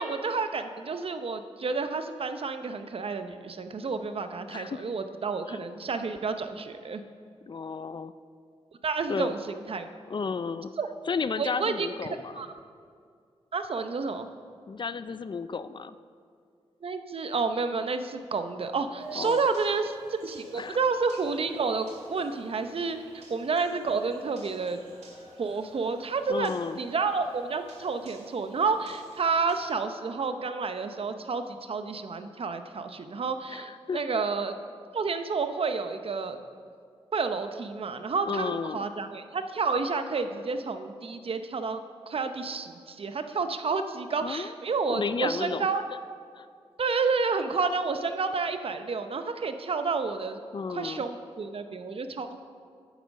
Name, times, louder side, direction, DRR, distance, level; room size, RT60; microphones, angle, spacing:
voice 1, 0.0-7.0 8.8-9.9 10.8-10.9 11.4-11.9 12.3-12.5 13.5-14.3 16.8-24.8 25.4-34.5 34.9-36.4 37.1-41.8 42.1-45.8 46.8-50.4 50.7-52.4, right 4 dB, 55° right, 8 dB, 0.8 m, -30 dB
voice 2, 4.5-4.8 5.5-5.6 7.5-8.1 9.1-9.3 10.1-10.7 11.1-12.4 14.7-16.0 19.2-19.4 20.6-20.8 26.3-26.8 33.5-34.2 38.2-38.8 44.2-44.5 44.9-45.8 46.3-46.5 50.5-51.0, left 5 dB, 45° left, 14 dB, 0.4 m, -33 dB
sound 1, 19.0-29.6, right 3 dB, 85° right, 2.1 m, -52 dB
9.2 x 8.1 x 6.4 m, 2.2 s
cardioid pair, 55°, 11 cm